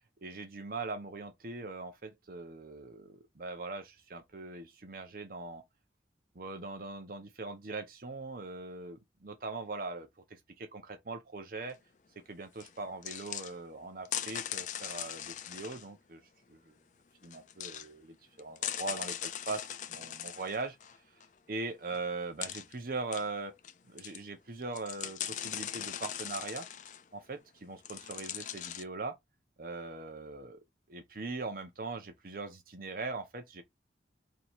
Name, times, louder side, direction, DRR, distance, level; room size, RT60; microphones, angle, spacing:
voice 1, 0.2-5.6 6.3-11.8 12.3-16.2 16.5-16.8 17.2-20.8 21.5-23.6 23.9-26.7 27.1-29.2 29.6-30.6 30.9-33.6, right 3 dB, 50° right, 0.7 m, -41 dB
sound 1, 12.6-12.7 13.0-13.5 14.0-15.8 17.2-17.9 18.4-21.2 21.9-22.0 22.4-22.7 23.1-23.7 24.0-24.2 24.6-27.0 27.8-28.8, left 10 dB, 40° left, 0.4 m, -40 dB
3.0 x 2.8 x 4.4 m
head